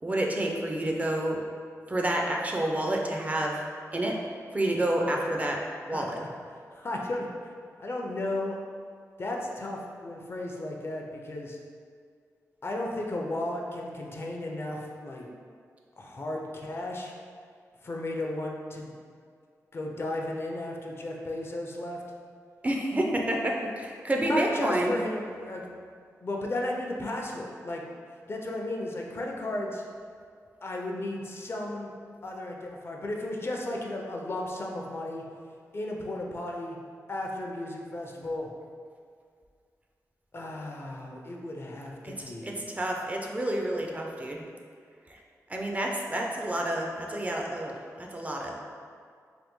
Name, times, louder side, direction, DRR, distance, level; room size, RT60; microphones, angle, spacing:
voice 1, 0.0-1.4 1.9-3.6 3.9-4.2 4.5-6.2 22.6-25.0 42.0-44.5 45.1-45.2 45.5-48.6, right 1 dB, 25° right, 0 dB, 0.3 m, -29 dB
voice 2, 5.9-6.3 6.7-7.5 7.8-8.6 9.2-11.6 12.6-15.3 16.0-17.1 17.8-18.9 19.7-22.0 24.2-25.6 26.2-27.8 28.3-29.8 30.6-31.9 32.2-35.2 35.7-36.8 37.1-38.5 40.3-42.6, left 1 dB, 45° left, 0 dB, 0.4 m, -34 dB
3.3 x 2.2 x 2.9 m, 2.1 s
wide cardioid pair, 80°, 6 cm